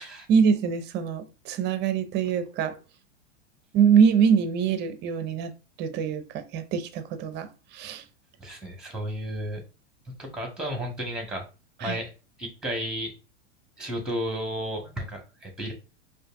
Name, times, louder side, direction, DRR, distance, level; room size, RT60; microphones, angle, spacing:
voice 1, 0.3-2.7 3.7-5.5 5.8-7.5 7.7-8.0 11.8-12.0, right 7 dB, 30° right, 0.6 m, -23 dB
voice 2, 8.4-9.6 10.2-11.5 11.8-12.1 12.4-13.1 13.8-15.7, equal, ahead, 1.4 m, -33 dB
4.9 x 2.6 x 2.5 m
hypercardioid pair, 115°, 35 cm